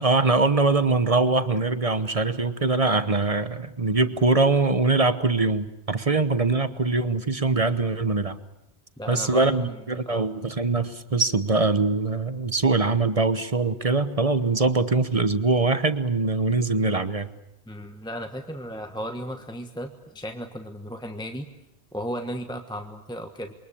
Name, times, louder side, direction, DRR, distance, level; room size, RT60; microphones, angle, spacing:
voice 1, 0.0-8.4 9.1-17.3, right 3 dB, 35° right, 12 dB, 1.2 m, -23 dB
voice 2, 9.0-9.8 10.1-10.3 17.7-21.5 21.9-23.5, equal, 5° left, 6 dB, 1.3 m, -35 dB
28.0 x 23.0 x 8.5 m, 0.85 s
omnidirectional pair, 1.1 m